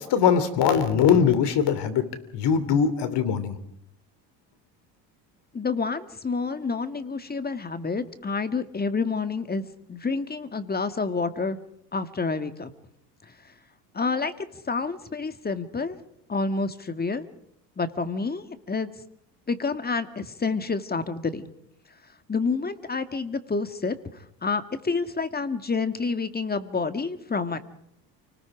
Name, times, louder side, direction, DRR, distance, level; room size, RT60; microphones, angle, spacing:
voice 1, 0.0-2.0 2.3-3.6, left 7 dB, 55° left, 13 dB, 3.2 m, -21 dB
voice 2, 5.5-9.6 9.9-11.6 11.9-12.7 13.2-13.3 13.9-16.0 16.3-17.3 17.8-18.9 19.5-21.5 22.3-27.6, left 4 dB, 20° left, 10 dB, 1.9 m, -28 dB
29.5 x 20.0 x 5.0 m, 0.75 s
hypercardioid pair, 80°, 49 cm